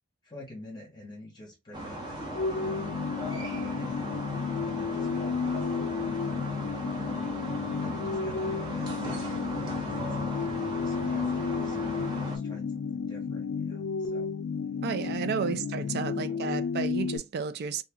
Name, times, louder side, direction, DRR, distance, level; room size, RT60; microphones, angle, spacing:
voice 1, 0.2-3.0 3.6-4.3 4.6-5.9 6.2-6.7 7.5-14.3 15.0-16.7, left 1 dB, 20° left, 0.9 m, -47 dB
sound 1, 1.7-12.4, right 1 dB, 25° right, 0.9 m, -37 dB
sound 2, 2.3-17.2, left 5 dB, 90° left, 0.4 m, -32 dB
voice 2, 14.8-17.8, right 6 dB, 55° right, 0.4 m, -32 dB
2.7 x 2.4 x 3.5 m
head